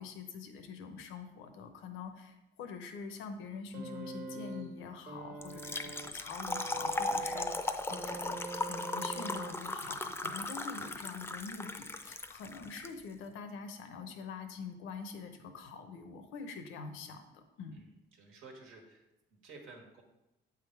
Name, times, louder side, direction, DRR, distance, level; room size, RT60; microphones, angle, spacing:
voice 1, 0.0-17.8, left 5 dB, 90° left, 7 dB, 0.8 m, -45 dB
sound 1, 3.7-9.9 10.9-11.1, right 4 dB, 50° right, 1.4 m, -44 dB
Trickle dribble / Fill (with liquid), 5.4-12.9, left 2 dB, 10° left, 0.5 m, -37 dB
voice 2, 17.7-19.0 19.4-20.0, right 3 dB, 90° right, 1 dB, 1.5 m, -53 dB
8.0 x 3.7 x 4.6 m, 0.96 s
cardioid pair, 90°, 20 cm